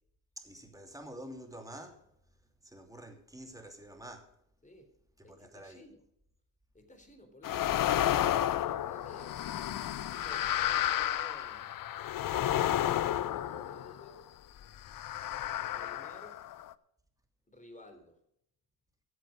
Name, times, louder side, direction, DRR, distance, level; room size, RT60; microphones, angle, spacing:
voice 1, 0.4-2.1 2.6-4.3 5.2-5.8, right 1 dB, 5° right, 2.7 m, -48 dB
voice 2, 5.2-6.0 6.7-8.1 8.5-9.5 10.1-11.7 12.6-14.2 15.7-16.4 17.5-18.2, left 1 dB, 15° left, 3.7 m, -54 dB
sound 1, 7.4-14.2 14.9-16.7, left 12 dB, 45° left, 0.7 m, -32 dB
14.0 x 7.6 x 6.5 m
hypercardioid pair, 65°, 48 cm